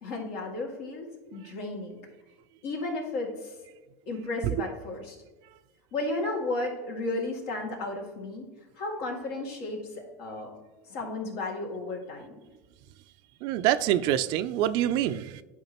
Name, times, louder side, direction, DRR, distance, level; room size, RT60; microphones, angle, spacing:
voice 1, 0.0-2.0 2.6-3.5 4.1-5.2 5.9-8.4 8.8-10.5 10.9-12.3, left 2 dB, 70° left, -1 dB, 2.3 m, -33 dB
voice 2, 13.4-15.4, right 12 dB, 55° right, 13 dB, 0.4 m, -26 dB
10.5 x 4.9 x 3.0 m, 1.2 s
supercardioid pair, 115°, 9 cm